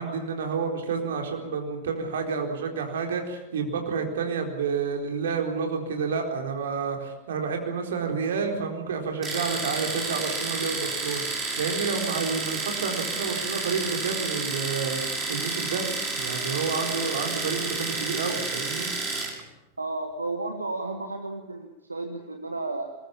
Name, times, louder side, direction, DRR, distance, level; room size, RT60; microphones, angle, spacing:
voice 1, 0.0-15.9 16.1-18.9, right 5 dB, 60° right, 3 dB, 4.2 m, -30 dB
Domestic sounds home sounds, 9.2-19.4, right 3 dB, 20° right, 6.8 m, -30 dB
voice 2, 19.8-22.9, right 2 dB, 80° right, 6 dB, 1.6 m, -33 dB
23.0 x 21.0 x 7.3 m, 0.96 s
figure-of-eight pair, 90°, 0 cm